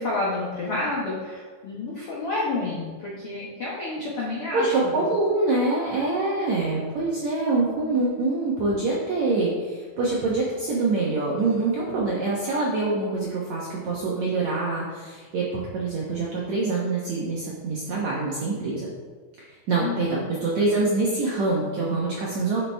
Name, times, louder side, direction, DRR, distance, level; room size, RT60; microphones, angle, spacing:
voice 1, 0.0-5.0 19.8-20.3, left 2 dB, 85° left, -7 dB, 1.2 m, -30 dB
voice 2, 4.5-18.9 19.7-22.6, right 3 dB, 75° right, -5 dB, 1.6 m, -25 dB
10.5 x 5.9 x 3.4 m, 1.5 s
omnidirectional pair, 4.8 m